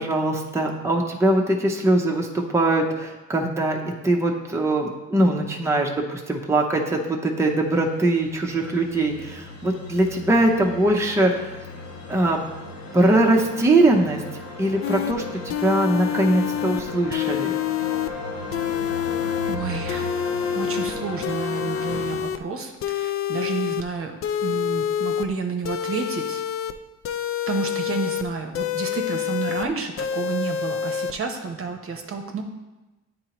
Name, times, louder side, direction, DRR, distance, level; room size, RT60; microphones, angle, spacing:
voice 1, 0.0-11.5 12.1-12.4 12.9-14.2 14.6-17.5, right 1 dB, 10° right, 0 dB, 0.7 m, -21 dB
sound 1, 7.5-22.2, left 2 dB, 65° left, 1.3 m, -36 dB
sound 2, 14.8-15.1 15.5-16.8 17.1-18.1 18.5-19.6 19.9-20.9 21.2-22.4 22.8-23.8 24.2-25.3 25.6-26.7 27.0-28.2 28.5-29.7 30.0-31.1, left 9 dB, 50° left, 0.4 m, -27 dB
voice 2, 19.5-20.1 20.5-24.2 24.4-26.4 27.5-32.4, right 5 dB, 45° right, 4 dB, 0.8 m, -30 dB
8.9 x 3.9 x 3.0 m, 1.1 s
cardioid pair, 90°, 30 cm